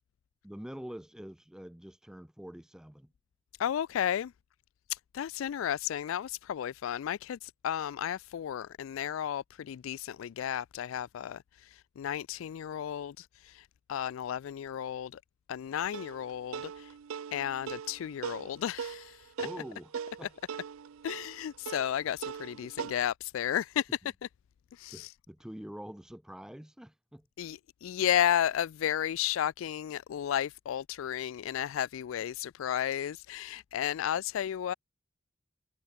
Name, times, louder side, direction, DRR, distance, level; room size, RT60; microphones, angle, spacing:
voice 1, 0.4-3.1 19.4-19.9 20.2-20.3 22.6-22.7 24.9-27.3, equal, 5° right, 0.4 m, -45 dB
voice 2, 3.6-4.3 4.9-15.2 15.5-16.9 17.3-19.5 21.0-23.9 24.2-24.3 24.7-25.1 27.4-34.7, left 10 dB, 75° left, 0.3 m, -33 dB
sound 1, 15.9-22.9, right 7 dB, 90° right, 0.4 m, -41 dB
head